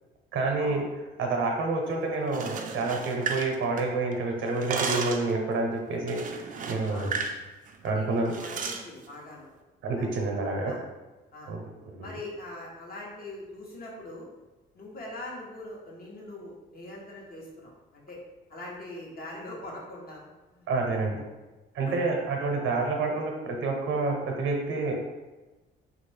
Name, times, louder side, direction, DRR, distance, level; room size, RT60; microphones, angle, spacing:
voice 1, 0.3-0.8 1.2-7.1 7.8-8.3 9.8-10.7 11.5-11.6 11.9-12.1 20.7-21.2 21.7-24.9, right 3 dB, 75° right, 2 dB, 0.7 m, -28 dB
sound 1, 2.2-4.1 4.4-5.3 6.1-7.4 7.7-7.9 8.3-8.8, right 5 dB, 45° right, 0.4 m, -34 dB
voice 2, 7.8-9.5 10.0-10.1 10.6-10.8 11.3-11.5 12.0-14.3 14.7-18.2 18.5-21.0 21.8-22.0, left 1 dB, 50° left, -3 dB, 1.0 m, -42 dB
3.1 x 2.4 x 3.2 m, 1.2 s
cardioid pair, 90°, 20 cm